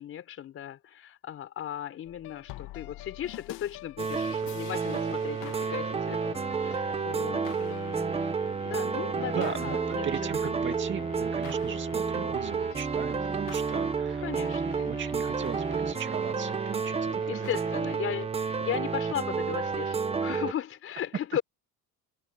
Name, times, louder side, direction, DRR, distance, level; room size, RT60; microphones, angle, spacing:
voice 1, 0.0-8.2 8.6-10.0 10.4-10.8 11.1-11.3 12.0-12.3 14.2-15.0 17.3-21.4, left 10 dB, 40° left, 4.3 m, -37 dB
sound 1, 2.0-18.3, left 17 dB, 85° left, 2.8 m, -46 dB
sound 2, 4.0-20.5, right 5 dB, 15° right, 1.3 m, -30 dB
voice 2, 9.3-14.2 14.6-17.5, right 9 dB, 35° right, 2.1 m, -38 dB
cardioid pair, 175°, 34 cm